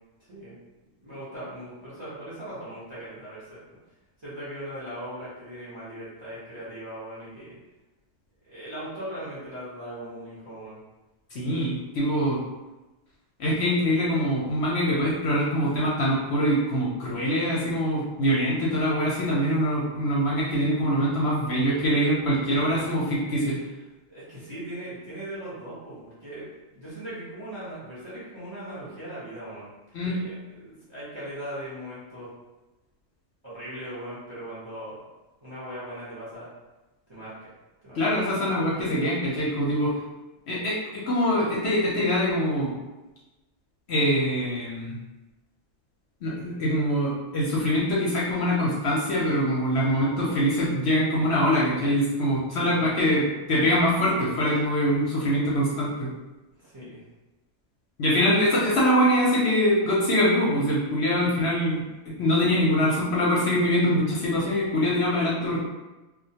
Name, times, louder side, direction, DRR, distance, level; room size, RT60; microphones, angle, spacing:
voice 1, 1.0-3.8 4.2-7.6 8.4-10.8 19.6-19.8 23.2-23.3 24.1-29.7 30.0-32.3 33.4-35.0 35.4-36.5 37.1-37.5 37.8-38.0 52.6-52.9 56.6-57.0, right 1 dB, 30° right, -10 dB, 0.6 m, -39 dB
voice 2, 11.3-12.4 13.4-23.6 29.9-30.2 37.9-39.9 40.5-42.7 43.9-45.0 46.2-56.1 58.0-65.6, equal, 65° left, -5 dB, 0.7 m, -24 dB
2.2 x 2.1 x 2.7 m, 1.1 s
omnidirectional pair, 1.4 m